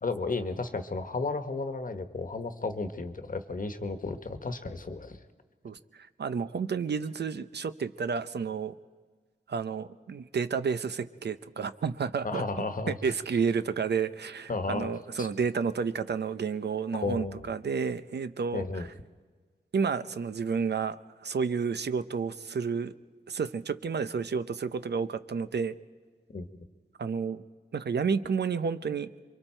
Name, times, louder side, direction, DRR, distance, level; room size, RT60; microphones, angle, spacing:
voice 1, 0.0-5.2 12.2-13.0 14.5-14.9 15.2-15.3 16.9-17.4 18.5-18.9 26.3-26.5, left 3 dB, 50° left, 8 dB, 1.3 m, -33 dB
voice 2, 5.6-8.7 9.5-12.4 12.9-18.9 19.7-22.9 23.3-25.7 27.0-27.4 27.7-29.1, right 5 dB, 75° right, 12 dB, 0.7 m, -31 dB
28.0 x 23.5 x 4.5 m, 1.5 s
wide cardioid pair, 110°, 18 cm